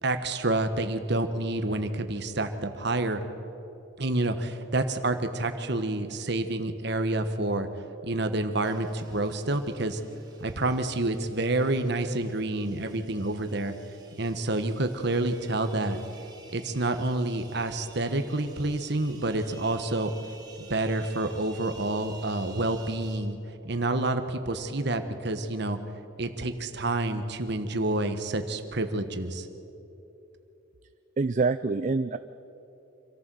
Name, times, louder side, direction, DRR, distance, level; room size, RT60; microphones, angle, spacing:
voice 1, 0.0-3.2 4.0-7.7 8.0-10.0 10.4-13.7 14.2-16.0 16.5-20.1 20.6-23.4 23.6-25.8 26.2-29.5, right 2 dB, 55° right, 8 dB, 1.4 m, -28 dB
sound 1, 8.6-23.2, right 4 dB, 20° right, 3.2 m, -52 dB
voice 2, 31.2-32.2, right 3 dB, 40° right, 12 dB, 0.4 m, -25 dB
26.0 x 14.0 x 7.8 m, 3.0 s
head